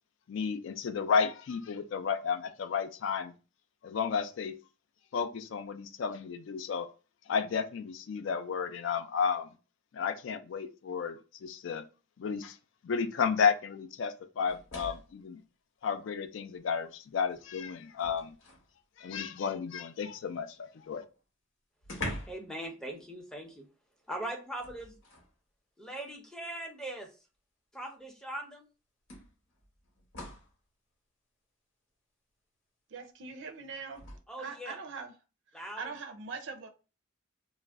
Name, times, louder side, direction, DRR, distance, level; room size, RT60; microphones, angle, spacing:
voice 1, 0.3-3.3 3.8-4.6 5.1-6.9 7.3-9.5 9.9-11.8 12.2-12.6 12.8-15.4 15.8-18.3 19.0-21.0, left 6 dB, 70° left, 0.3 m, -32 dB
sound 1, 14.5-15.2 16.5-16.6 17.1-18.7 20.8-20.9 21.1-21.2 21.8-22.5 22.8-23.1 24.6-25.3 26.5-26.6 28.1-28.2 29.1-30.6 33.9-34.2, left 1 dB, 90° left, 1.0 m, -43 dB
voice 2, 22.3-23.7 24.1-25.0 25.8-27.1 27.7-28.7 34.3-34.8 35.5-35.9, right 1 dB, 5° left, 0.5 m, -40 dB
voice 3, 32.9-34.1 34.4-35.1 35.8-36.7, right 5 dB, 65° right, 0.5 m, -41 dB
2.4 x 2.0 x 3.4 m
head